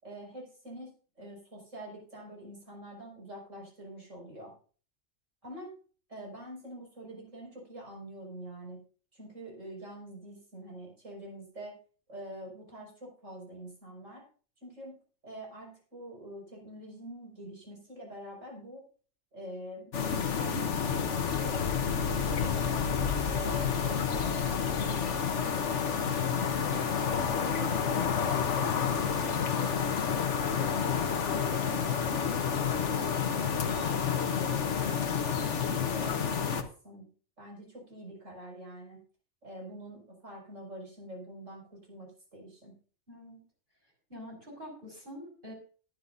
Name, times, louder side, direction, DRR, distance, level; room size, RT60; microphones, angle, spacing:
voice 1, 0.0-4.5 5.4-5.7 6.1-8.8 9.1-11.7 12.1-14.2 14.6-15.0 15.2-18.8 19.3-22.9 23.3-26.0 26.7-30.1 30.5-32.4 32.6-35.0 35.3-37.1 37.4-39.0 39.4-42.7, right 1 dB, 65° right, -2 dB, 6.1 m, -45 dB
sound 1, 19.9-36.6, left 7 dB, 60° left, 1.3 m, -29 dB
voice 2, 43.1-43.4 44.1-45.5, equal, 40° right, -2 dB, 5.3 m, -45 dB
18.5 x 10.5 x 2.7 m, 0.41 s
omnidirectional pair, 1.4 m